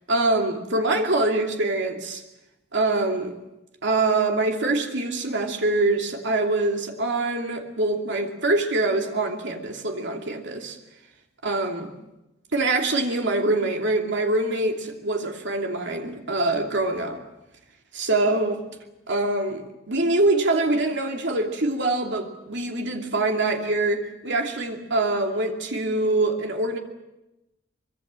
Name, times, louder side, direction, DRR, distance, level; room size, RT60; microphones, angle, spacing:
voice 1, 0.1-2.2 2.7-3.3 3.8-10.8 11.4-11.9 12.5-17.2 17.9-18.6 19.1-26.8, right 2 dB, 65° right, 3 dB, 2.8 m, -24 dB
24.5 x 23.0 x 7.6 m, 0.96 s
head